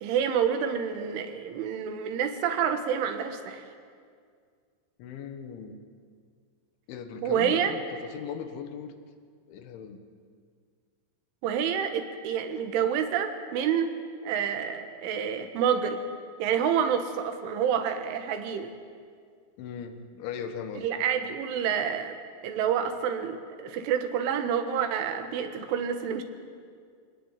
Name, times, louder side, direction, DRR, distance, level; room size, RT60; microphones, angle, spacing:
voice 1, 0.0-3.6 7.2-7.7 11.4-13.9 14.2-16.0 16.4-18.7 20.8-22.2 22.4-26.2, right 8 dB, 90° right, 7 dB, 4.0 m, -28 dB
voice 2, 5.0-5.8 6.9-8.9 9.5-10.0 19.6-20.9, left 7 dB, 80° left, 7 dB, 3.9 m, -38 dB
24.0 x 18.5 x 9.0 m, 2.1 s
omnidirectional pair, 5.4 m